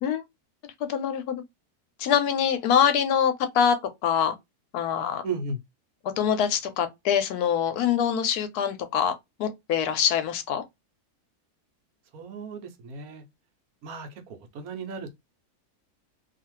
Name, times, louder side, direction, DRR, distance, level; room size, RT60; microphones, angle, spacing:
voice 1, 0.6-1.4 2.0-3.8 4.0-4.3 4.7-5.2 6.2-9.1 9.4-10.6, left 8 dB, 90° left, 1.1 m, -24 dB
voice 2, 5.2-5.6 12.1-13.2 13.8-15.1, right 3 dB, 75° right, 1.1 m, -35 dB
2.7 x 2.4 x 2.9 m
omnidirectional pair, 1.6 m